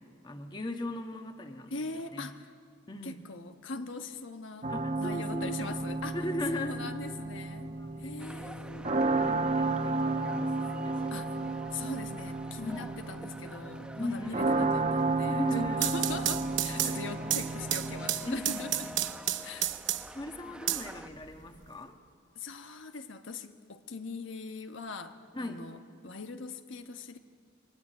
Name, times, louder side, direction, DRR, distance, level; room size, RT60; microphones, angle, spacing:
voice 1, 0.2-1.8 2.1-2.3 2.9-3.2 4.7-5.5 6.1-6.8 7.6-11.5 12.6-12.9 14.0-14.5 15.2-15.8 16.7-17.0 18.2-18.9 20.1-22.0 25.3-25.7, left 1 dB, 25° left, 5 dB, 1.4 m, -39 dB
voice 2, 1.7-2.5 3.0-4.7 5.0-6.2 6.5-7.7 8.0-8.9 11.1-11.4 11.7-18.9 19.4-19.7 22.3-25.8 26.0-27.2, left 3 dB, 90° left, 7 dB, 1.2 m, -41 dB
sound 1, 4.6-18.1, right 3 dB, 35° right, 1.0 m, -32 dB
sound 2, 8.2-21.1, equal, 5° right, 0.7 m, -48 dB
sound 3, 15.6-20.2 20.7-21.6, right 13 dB, 75° right, 0.9 m, -32 dB
27.5 x 23.0 x 8.9 m, 2.2 s
head